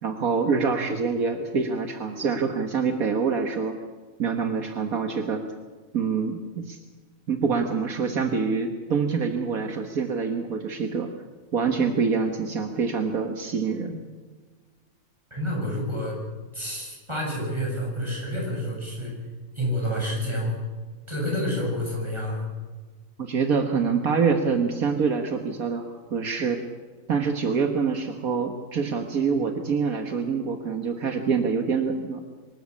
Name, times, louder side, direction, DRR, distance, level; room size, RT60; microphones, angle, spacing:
voice 1, 0.0-3.8 4.2-5.4 5.9-6.8 7.3-11.1 11.5-14.0 23.2-26.6 27.1-32.2, right 5 dB, 70° right, 5 dB, 1.9 m, -25 dB
voice 2, 15.3-16.2 16.5-19.1 19.5-20.6 21.1-22.4, equal, 20° right, -2 dB, 8.0 m, -28 dB
24.5 x 13.0 x 8.5 m, 1.4 s
omnidirectional pair, 1.5 m